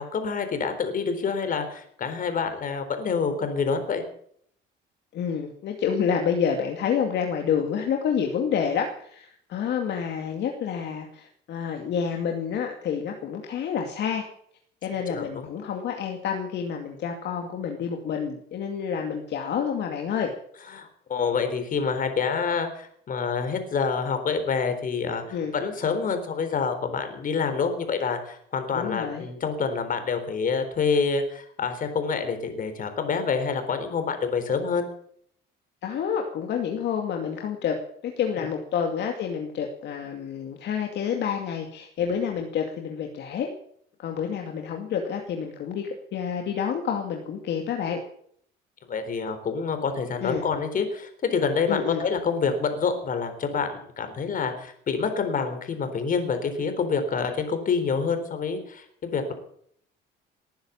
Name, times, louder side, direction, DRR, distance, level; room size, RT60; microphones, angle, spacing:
voice 1, 0.0-4.0 15.1-15.5 20.7-34.9 48.9-59.3, left 5 dB, 45° left, 8 dB, 3.9 m, -27 dB
voice 2, 5.1-14.3 14.8-20.3 25.3-25.5 28.7-29.2 35.8-43.5 44.0-48.0 50.2-50.4 51.7-52.0, left 7 dB, 60° left, 2 dB, 2.4 m, -28 dB
19.5 x 10.5 x 7.2 m, 0.66 s
cardioid pair, 115°, 20 cm